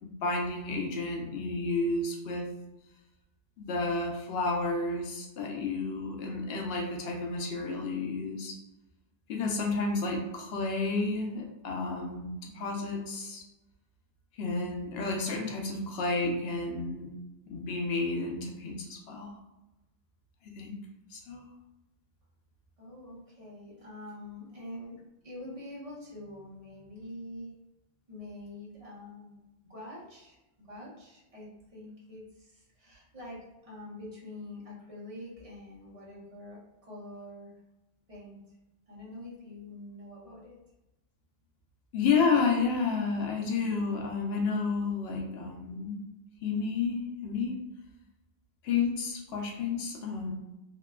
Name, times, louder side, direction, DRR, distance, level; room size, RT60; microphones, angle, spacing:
voice 1, 0.0-2.5 3.6-8.6 9.3-13.4 14.3-17.1 17.5-19.3 20.4-20.8 21.1-21.4 41.9-46.1 46.4-47.6 48.6-50.3, left 4 dB, 75° left, 1 dB, 0.8 m, -31 dB
voice 2, 22.8-27.5 28.1-29.3 29.6-30.4 30.7-31.5 31.7-33.4 33.6-37.5 38.1-38.4 38.9-40.6, left 1 dB, 35° right, -7 dB, 0.9 m, -45 dB
2.7 x 2.2 x 2.2 m, 0.96 s
omnidirectional pair, 1.1 m